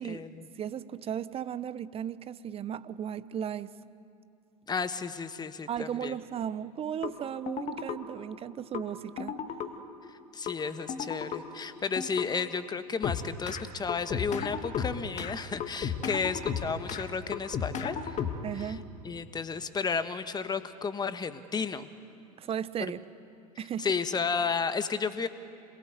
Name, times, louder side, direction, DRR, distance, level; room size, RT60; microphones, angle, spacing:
voice 1, 0.0-0.4 4.7-6.1 10.3-18.1 18.6-18.7 19.0-21.9 23.8-25.3, left 5 dB, 20° left, 1.5 m, -32 dB
voice 2, 0.5-3.7 5.7-9.4 18.4-18.9 22.4-23.0 23.6-23.9, right 9 dB, 30° right, 0.8 m, -35 dB
sound 1, 7.0-7.1 7.5-8.0 8.7-8.8 9.2-9.7 10.5-10.6 10.9-11.4 12.0-12.3 13.0-13.6 13.9-15.3 15.6-17.0 17.3-18.6, left 7 dB, 35° left, 2.1 m, -33 dB
27.0 x 21.0 x 8.2 m
hypercardioid pair, 85°, 20 cm